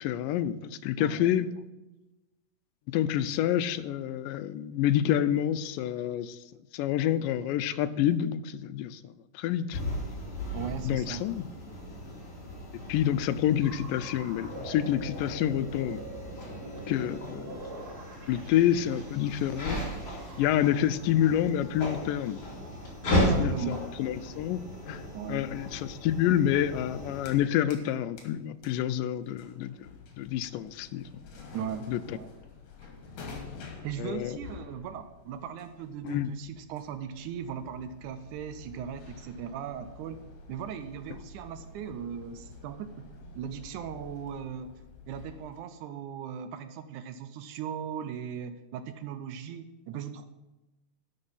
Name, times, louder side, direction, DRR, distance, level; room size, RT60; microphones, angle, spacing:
voice 1, 0.0-1.5 2.9-6.4 6.7-9.8 10.9-11.5 12.9-16.0 16.4-17.6 18.3-19.8 20.1-22.4 23.4-24.6 24.9-25.0 25.3-29.9 30.2-31.1 31.9-32.2 34.0-34.4 36.0-36.3, left 11 dB, 90° left, 14 dB, 2.2 m, -28 dB
voice 2, 1.0-1.3 10.5-11.3 23.2-23.8 25.1-25.5 31.5-32.3 33.8-40.2 40.5-44.8 45.1-50.3, right 8 dB, 80° right, 10 dB, 1.9 m, -38 dB
sound 1, 9.7-27.4, equal, 40° left, 3.4 m, -35 dB
sound 2, 13.6-22.9 25.9-26.2, right 2 dB, 35° right, 1.8 m, -46 dB
sound 3, 27.2-27.9 28.2-45.6, left 4 dB, 70° left, 3.2 m, -49 dB
12.0 x 6.1 x 5.6 m, 1.1 s
omnidirectional pair, 3.8 m